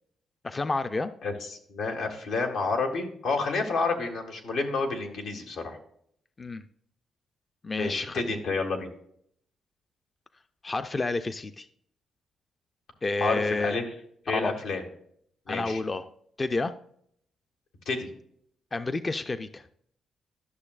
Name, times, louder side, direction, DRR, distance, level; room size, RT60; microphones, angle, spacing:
voice 1, 0.4-1.1 6.4-6.6 7.6-8.4 10.6-11.7 13.0-13.8 14.3-14.5 15.5-16.1 16.4-16.7 18.7-19.7, left 3 dB, 30° left, 10 dB, 0.4 m, -30 dB
voice 2, 1.2-5.8 7.8-8.9 13.2-13.8 14.2-14.8 15.5-15.8 17.8-18.1, left 3 dB, 85° left, 2 dB, 1.7 m, -29 dB
12.0 x 6.5 x 2.4 m, 0.67 s
cardioid pair, 90°, 0 cm